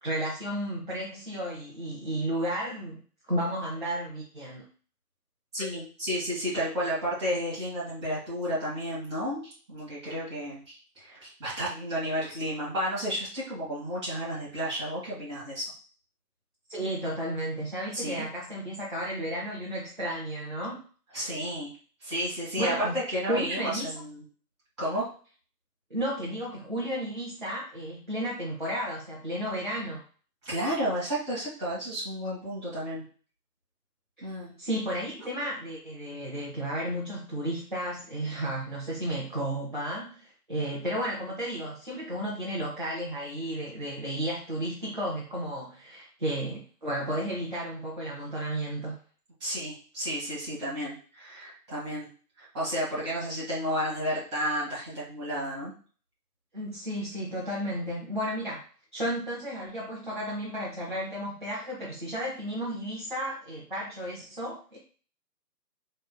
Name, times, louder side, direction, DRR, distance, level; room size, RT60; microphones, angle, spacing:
voice 1, 0.0-3.0 3.3-4.6 16.7-20.8 22.6-23.0 23.3-23.9 25.9-30.0 34.2-34.3 34.6-49.0 56.5-58.6 58.9-64.8, right 1 dB, 30° right, -6 dB, 0.6 m, -33 dB
voice 2, 5.5-15.7 17.9-18.3 21.1-21.7 22.0-24.2 24.8-25.1 30.4-33.0 34.2-34.6 49.4-52.1 52.4-55.7, equal, 15° right, -8 dB, 1.8 m, -32 dB
4.4 x 3.2 x 2.2 m, 0.40 s
figure-of-eight pair, 160°, 49 cm